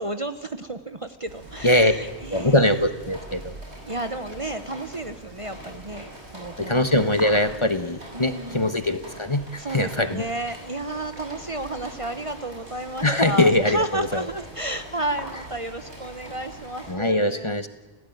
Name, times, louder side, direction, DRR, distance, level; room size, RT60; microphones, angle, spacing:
voice 1, 0.0-2.9 3.9-6.8 8.1-8.9 9.6-17.7, right 1 dB, 30° right, 9 dB, 1.0 m, -32 dB
sound 1, 1.3-16.9, right 1 dB, 80° right, 7.4 m, -42 dB
voice 2, 2.3-3.5 6.6-10.2 13.0-14.2 16.9-17.7, left 1 dB, 25° left, 9 dB, 1.3 m, -22 dB
29.5 x 16.0 x 9.3 m, 1.1 s
omnidirectional pair, 1.1 m